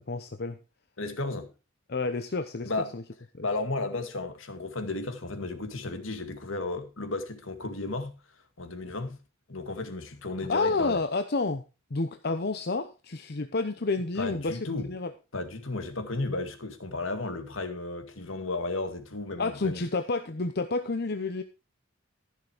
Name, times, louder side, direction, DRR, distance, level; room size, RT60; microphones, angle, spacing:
voice 1, 0.1-0.6 1.9-3.0 3.3-3.5 10.4-11.6 11.9-15.1 19.4-21.4, left 3 dB, 50° left, 0.8 m, -30 dB
voice 2, 1.0-1.5 2.6-2.9 3.4-8.2 8.6-9.2 9.5-11.0 14.2-14.9 15.3-19.8, left 2 dB, 80° left, 2.1 m, -34 dB
14.5 x 6.6 x 5.0 m
head